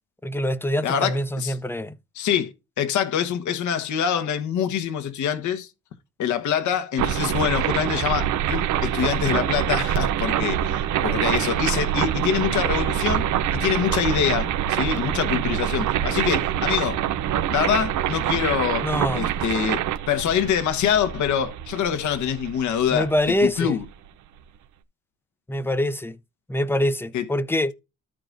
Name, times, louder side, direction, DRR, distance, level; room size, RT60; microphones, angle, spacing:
voice 1, 0.2-1.9 18.8-19.2 22.9-23.8 25.5-26.2 26.5-27.7, left 1 dB, 5° left, 0.7 m, -24 dB
voice 2, 0.8-1.6 2.1-5.7 6.2-17.0 17.5-23.1 23.4-23.8 27.1-27.2, left 8 dB, 75° left, 1.3 m, -25 dB
sound 1, 7.0-23.9, right 11 dB, 80° right, 0.8 m, -25 dB
13.5 x 4.9 x 2.6 m
cardioid pair, 90°, 30 cm